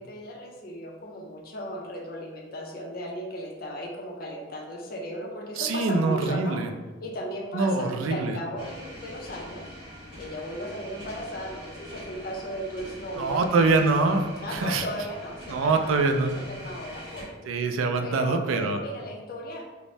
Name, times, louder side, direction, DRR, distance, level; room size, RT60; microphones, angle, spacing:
voice 1, 0.0-6.6 7.0-9.6 10.2-13.4 14.4-16.0 16.3-17.4 18.0-19.6, equal, 45° left, -1 dB, 0.5 m, -36 dB
voice 2, 5.6-6.7 7.5-8.3 13.2-14.8 15.5-16.3 17.5-18.8, right 3 dB, 85° right, 5 dB, 0.3 m, -24 dB
sound 1, 8.6-17.3, equal, 25° right, 0.9 m, -43 dB
2.6 x 2.0 x 3.1 m, 1.2 s
head